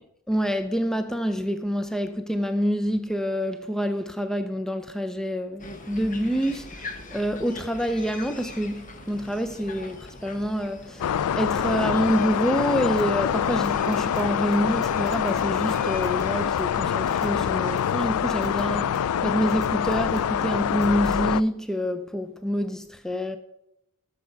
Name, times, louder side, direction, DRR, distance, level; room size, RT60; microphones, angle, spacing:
voice 1, 0.3-23.4, equal, ahead, 0.5 m, -27 dB
sound 1, 5.6-17.8, left 2 dB, 35° left, 1.2 m, -42 dB
sound 2, 11.0-21.4, left 8 dB, 75° left, 0.4 m, -25 dB
sound 3, 13.0-13.1 13.6-14.2 14.5-14.6 14.8-15.4 15.7-16.2 16.6-16.7 17.1-17.3 17.8-17.9 18.4-18.6 18.9-19.0 19.5-20.2 20.8-21.1, right 1 dB, 15° right, 1.6 m, -43 dB
13.5 x 6.7 x 5.2 m
head